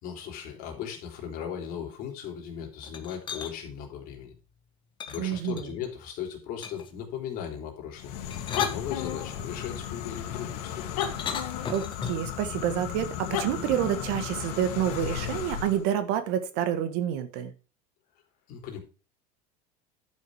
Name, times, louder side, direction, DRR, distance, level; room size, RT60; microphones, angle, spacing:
voice 1, 0.0-4.3 5.1-8.1 8.5-11.0 18.5-18.8, left 8 dB, 50° left, 1 dB, 3.7 m, -37 dB
sound 1, 2.8-3.5 5.0-5.9 6.6-7.0 8.1-9.5 11.0-12.3, left 6 dB, 25° left, 1.4 m, -37 dB
voice 2, 5.2-5.7 11.7-17.5, right 10 dB, 60° right, 10 dB, 1.7 m, -28 dB
sound 2, 8.0-15.8, left 10 dB, 85° left, 2.1 m, -34 dB
11.5 x 6.5 x 4.9 m, 0.34 s
cardioid pair, 150°, 19 cm